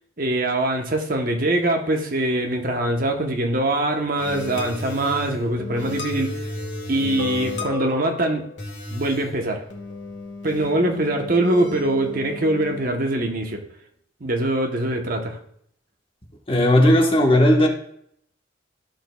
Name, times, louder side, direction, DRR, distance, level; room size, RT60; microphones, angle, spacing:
voice 1, 0.2-6.3 6.9-8.4 8.9-9.6 10.4-13.6 14.2-15.4, right 1 dB, 45° right, 4 dB, 1.0 m, -23 dB
sound 1, 4.2-12.8, left 3 dB, 70° left, 1.6 m, -33 dB
voice 2, 16.5-17.7, left 1 dB, 30° left, 1 dB, 1.1 m, -16 dB
13.0 x 6.1 x 2.3 m, 0.68 s
head